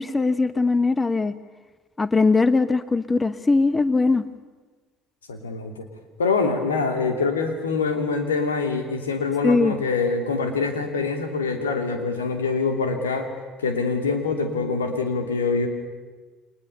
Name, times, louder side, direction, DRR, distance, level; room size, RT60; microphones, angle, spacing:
voice 1, 0.0-1.3 2.0-4.2 9.4-9.7, left 3 dB, 20° left, 14 dB, 1.1 m, -20 dB
voice 2, 5.3-5.9 6.2-13.3 13.6-15.7, left 4 dB, 80° left, 6 dB, 2.8 m, -24 dB
29.5 x 24.5 x 6.9 m, 1.3 s
figure-of-eight pair, 60°, 0 cm